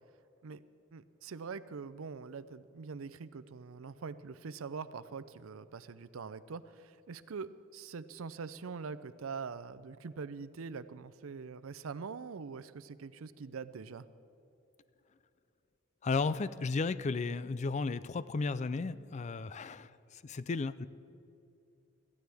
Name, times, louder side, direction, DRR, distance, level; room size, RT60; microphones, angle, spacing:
voice 1, 0.9-14.0, right 5 dB, 85° right, 14 dB, 0.5 m, -43 dB
voice 2, 16.0-20.9, left 4 dB, 35° left, 16 dB, 0.4 m, -34 dB
22.0 x 14.5 x 3.5 m, 2.8 s
head